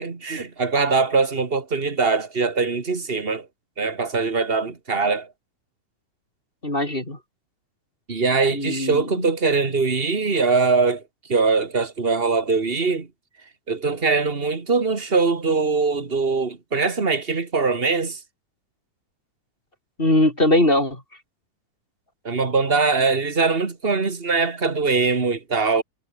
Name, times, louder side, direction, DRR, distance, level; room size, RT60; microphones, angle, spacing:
voice 1, 0.0-3.5 3.8-5.3 8.1-11.0 11.3-13.1 13.7-18.2 22.2-25.8, right 4 dB, 25° right, 1.6 m, -22 dB
voice 2, 6.6-7.2 8.5-9.3 20.0-21.0, left 1 dB, 15° left, 4.4 m, -21 dB
omnidirectional pair, 3.7 m